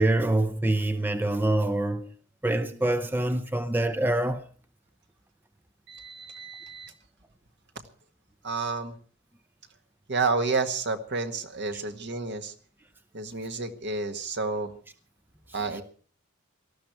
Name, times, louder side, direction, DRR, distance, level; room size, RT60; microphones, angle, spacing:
voice 1, 0.0-2.1 2.4-4.4 11.7-11.8, right 1 dB, 10° right, 0.6 m, -25 dB
voice 2, 5.9-6.9 8.4-9.0 10.1-12.5 13.1-14.7 15.5-15.8, right 3 dB, 55° right, 1.8 m, -30 dB
18.5 x 13.5 x 4.7 m
head